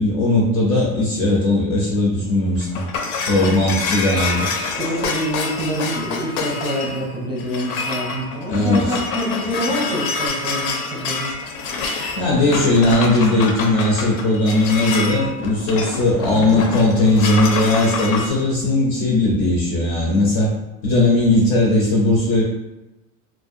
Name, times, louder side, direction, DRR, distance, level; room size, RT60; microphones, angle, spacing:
voice 1, 0.0-2.9 3.3-5.1 8.5-9.0 12.2-20.5 20.8-22.4, left 2 dB, 35° left, -3 dB, 0.4 m, -18 dB
sound 1, 2.3-18.3, left 4 dB, 90° left, 0.6 m, -27 dB
voice 2, 3.3-3.8 4.8-11.4 16.2-16.6, equal, 10° right, -6 dB, 0.6 m, -26 dB
2.5 x 2.1 x 2.5 m, 0.97 s
supercardioid pair, 150°, 42 cm